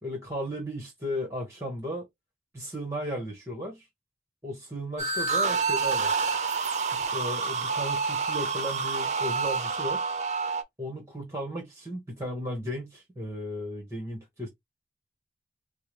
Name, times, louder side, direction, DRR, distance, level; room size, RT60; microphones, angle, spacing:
voice 1, 0.0-2.1 2.5-3.9 4.4-6.1 6.9-10.1 10.8-14.5, equal, 15° right, 1.0 m, -35 dB
sound 1, 5.0-10.6, right 4 dB, 40° right, 0.6 m, -28 dB
4.5 x 2.0 x 3.2 m
head